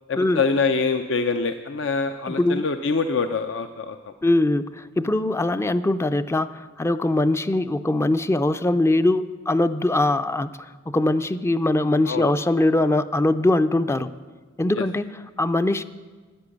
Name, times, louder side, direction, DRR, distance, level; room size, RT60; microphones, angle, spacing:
voice 1, 0.1-4.1 12.1-12.3 14.7-14.8, left 4 dB, 70° left, 7 dB, 0.6 m, -25 dB
voice 2, 2.3-2.7 4.2-14.1 14.6-15.8, left 2 dB, 15° left, 11 dB, 0.4 m, -22 dB
13.0 x 10.0 x 8.5 m, 1.4 s
head